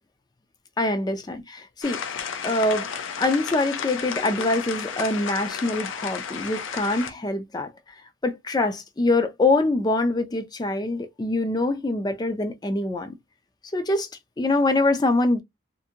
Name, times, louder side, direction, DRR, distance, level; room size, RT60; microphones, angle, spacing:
voice 1, 0.8-2.9 3.2-7.7 8.2-13.1 13.7-14.1 14.4-15.4, left 2 dB, 20° left, 0.4 m, -24 dB
sound 1, 1.8-7.1, left 7 dB, 80° left, 0.5 m, -32 dB
2.6 x 2.5 x 2.7 m
head